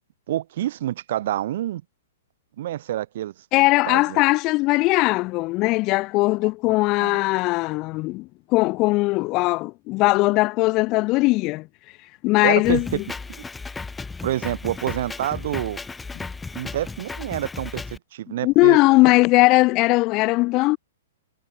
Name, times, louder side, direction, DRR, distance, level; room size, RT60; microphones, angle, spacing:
voice 1, 0.3-1.8 2.6-3.3 3.9-4.2 7.0-7.2 12.4-13.0 14.2-15.8 16.5-17.8 18.1-18.8, right 13 dB, 55° right, 1.2 m, -27 dB
voice 2, 3.5-11.7 12.2-13.0 18.4-20.8, left 22 dB, 35° left, 0.7 m, -19 dB
Drum kit, 12.6-18.0, left 4 dB, 10° left, 5.4 m, -35 dB
figure-of-eight pair, 115°, 0 cm